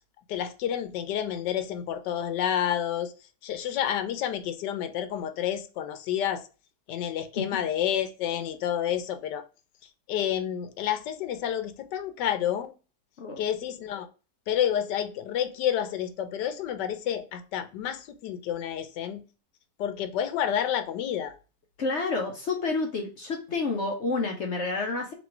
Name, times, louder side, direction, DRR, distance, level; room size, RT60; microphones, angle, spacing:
voice 1, 0.3-3.1 3.4-6.4 6.9-9.4 10.1-12.7 13.4-14.1 14.5-19.2 19.8-21.3, left 10 dB, 85° left, 9 dB, 1.2 m, -29 dB
voice 2, 21.8-25.1, left 3 dB, 55° left, 2 dB, 0.8 m, -29 dB
3.1 x 3.1 x 4.3 m, 0.33 s
omnidirectional pair, 1.8 m